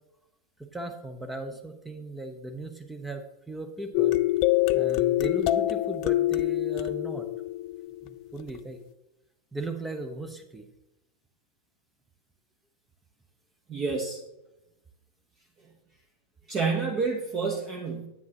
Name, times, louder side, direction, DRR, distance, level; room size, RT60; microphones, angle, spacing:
voice 1, 0.6-4.2 4.7-7.3 8.0-8.8 9.5-10.7, right 2 dB, 10° right, 7 dB, 0.7 m, -37 dB
sound 1, 3.9-8.4, left 15 dB, 40° left, 0.3 m, -25 dB
voice 2, 13.7-14.2 16.5-18.1, right 4 dB, 30° right, 1 dB, 1.0 m, -29 dB
9.5 x 8.4 x 2.9 m, 0.92 s
figure-of-eight pair, 90°, 0 cm